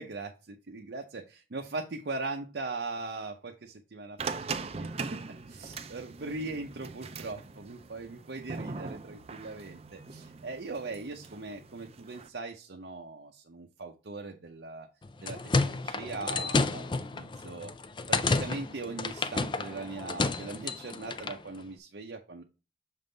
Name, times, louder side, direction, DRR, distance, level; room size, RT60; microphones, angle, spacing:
voice 1, 0.0-5.2 5.5-14.9 15.2-17.7 18.1-22.4, right 3 dB, 75° right, 3 dB, 0.7 m, -40 dB
sound 1, 4.2-12.3, right 4 dB, 35° right, 0.5 m, -41 dB
sound 2, 15.0-21.4, left 3 dB, 25° left, 0.4 m, -31 dB
6.5 x 3.7 x 3.9 m, 0.31 s
head